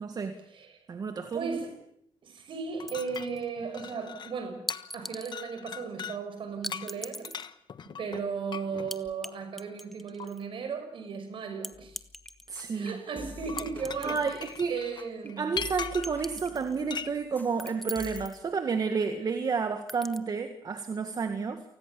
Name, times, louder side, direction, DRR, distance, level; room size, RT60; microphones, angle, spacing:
voice 1, 0.0-0.4 0.9-1.6 12.5-13.0 14.0-14.8 15.4-21.6, right 5 dB, 45° right, 1.8 m, -31 dB
voice 2, 1.3-1.8 2.2-4.7 4.9-7.3 8.0-12.0 12.7-14.3 14.7-15.6, right 5 dB, 60° right, 5.9 m, -36 dB
sound 1, 2.8-4.5 4.7-5.0 5.3-6.2 6.7-8.9 10.2-10.3 13.3-16.2 16.9-17.2, left 7 dB, 50° left, 1.3 m, -40 dB
sound 2, 2.9-3.4 4.7-5.4 6.6-7.5 8.9-9.3 9.6-10.4 11.6-12.7 13.6-14.6 14.9-15.0 16.0-16.8 17.6-18.4 19.9-20.2, equal, ahead, 1.2 m, -40 dB
sound 3, 11.7-14.7 15.0-15.3 15.5-18.3, left 3 dB, 20° left, 2.8 m, -47 dB
28.5 x 20.0 x 7.0 m
cardioid pair, 105°, 10 cm